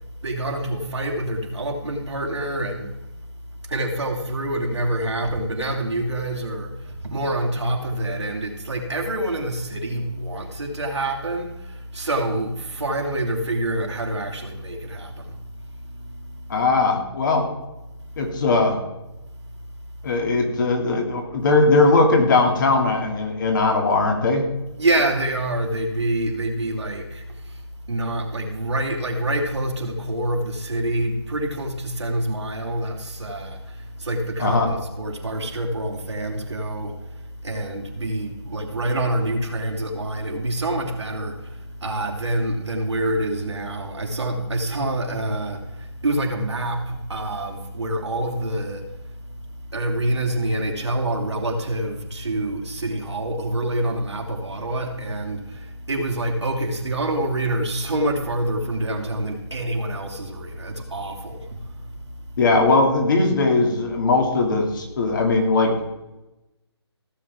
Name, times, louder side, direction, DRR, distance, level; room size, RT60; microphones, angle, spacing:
voice 1, 0.2-2.9 3.7-15.4 16.0-16.4 24.8-27.6 27.9-49.0 49.3-49.4 49.7-62.0, right 1 dB, 85° right, 2.7 m, -26 dB
voice 2, 16.5-17.5 18.2-18.8 20.0-24.5 34.4-34.7 62.4-65.8, left 3 dB, 45° left, 2.5 m, -19 dB
16.0 x 7.7 x 3.6 m
hypercardioid pair, 160°, 14 cm